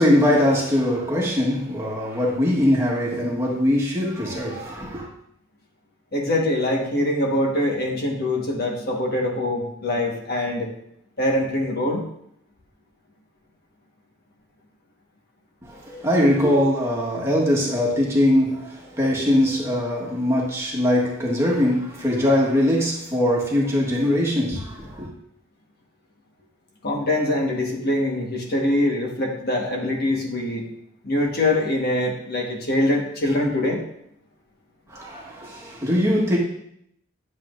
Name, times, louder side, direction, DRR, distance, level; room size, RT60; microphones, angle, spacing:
voice 1, 0.0-5.1 15.6-25.1 34.9-36.4, left 1 dB, 15° right, 1.4 m, -21 dB
voice 2, 6.1-10.7 11.2-12.0 26.8-30.6 31.0-33.8, left 1 dB, 50° left, 1.4 m, -23 dB
10.0 x 7.4 x 2.6 m
head